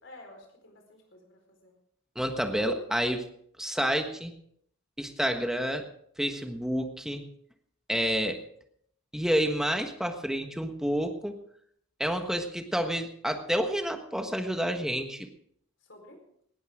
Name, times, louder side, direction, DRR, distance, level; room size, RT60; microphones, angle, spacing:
voice 1, 0.0-1.7 15.8-16.2, left 1 dB, 65° left, 3 dB, 4.5 m, -52 dB
voice 2, 2.1-3.2 3.6-4.3 5.0-5.9 6.2-7.2 7.9-8.4 9.1-11.4 12.0-15.3, equal, 5° right, 5 dB, 1.4 m, -29 dB
19.0 x 15.0 x 3.7 m, 0.66 s
head